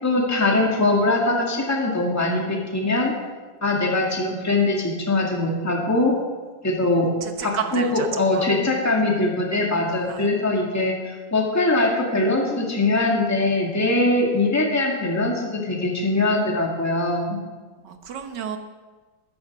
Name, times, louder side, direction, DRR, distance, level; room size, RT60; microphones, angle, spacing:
voice 1, 0.0-3.1 3.6-6.2 6.6-7.1 7.4-17.4, left 2 dB, 10° left, -1 dB, 2.0 m, -22 dB
voice 2, 7.2-8.5 10.1-10.3 17.8-18.6, right 7 dB, 70° right, 6 dB, 1.7 m, -31 dB
13.5 x 10.5 x 6.1 m, 1.3 s
omnidirectional pair, 2.0 m